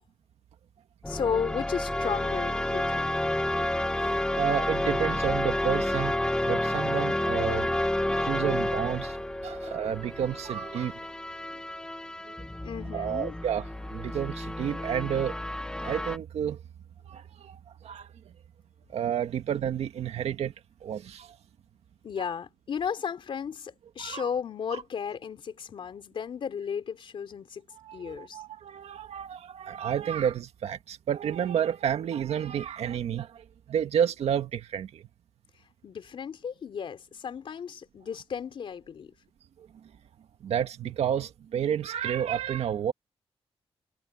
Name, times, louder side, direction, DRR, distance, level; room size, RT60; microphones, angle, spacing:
voice 1, 1.0-3.3 12.6-13.3 22.0-27.6 27.9-28.4 35.8-39.1, left 7 dB, 55° left, 3.7 m, -34 dB
sound 1, 1.0-16.2, left 1 dB, 5° left, 1.2 m, -30 dB
voice 2, 4.4-6.2 6.4-7.8 8.2-9.2 9.4-11.0 12.3-12.4 12.9-13.6 13.9-15.3 15.8-16.6 17.1-18.1 18.9-20.5 20.8-21.4 24.0-24.3 24.7-24.8 27.8-35.0 39.6-39.7 40.4-42.9, right 9 dB, 90° right, 1.9 m, -30 dB
wide cardioid pair, 170°, 10 cm